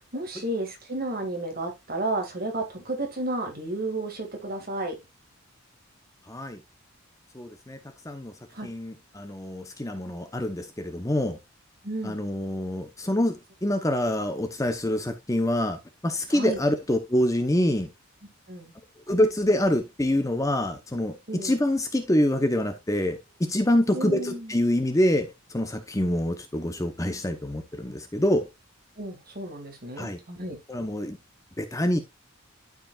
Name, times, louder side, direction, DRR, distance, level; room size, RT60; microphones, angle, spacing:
voice 1, 0.0-5.0 8.5-8.7 11.8-12.2 16.3-16.6 18.5-18.7 21.3-21.6 23.9-24.6 29.0-30.6, right 2 dB, 45° right, 2.1 m, -32 dB
voice 2, 6.3-6.6 7.3-7.8 8.0-8.3 8.6-11.4 12.0-17.9 19.1-28.5 30.0-30.2 30.7-31.2 31.6-32.0, left 1 dB, 15° left, 0.8 m, -26 dB
12.0 x 5.0 x 2.4 m
head